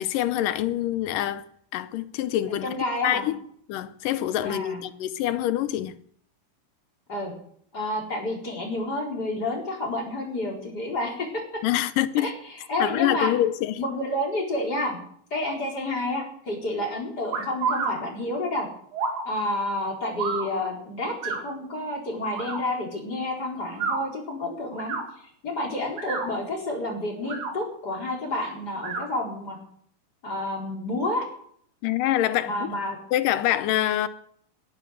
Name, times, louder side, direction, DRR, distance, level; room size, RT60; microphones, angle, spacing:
voice 1, 0.0-1.5 1.7-2.7 3.0-3.4 3.7-6.0 11.6-12.3 12.8-13.8 31.8-32.7 33.1-34.1, left 13 dB, 75° left, 2.1 m, -25 dB
voice 2, 2.5-3.2 4.4-4.8 7.1-7.3 7.7-11.4 12.2-13.3 13.8-15.0 15.3-18.7 19.2-29.6 30.2-31.3 32.4-33.0, left 1 dB, 25° left, 4.7 m, -30 dB
sound 1, 17.3-17.9 18.9-19.2 20.2-20.5 21.2-21.4 22.3-22.6 23.7-24.0 24.7-25.0 25.9-26.3 27.2-27.5 28.8-29.0, right 5 dB, 80° right, 4.7 m, -29 dB
17.5 x 12.0 x 6.6 m
omnidirectional pair, 4.5 m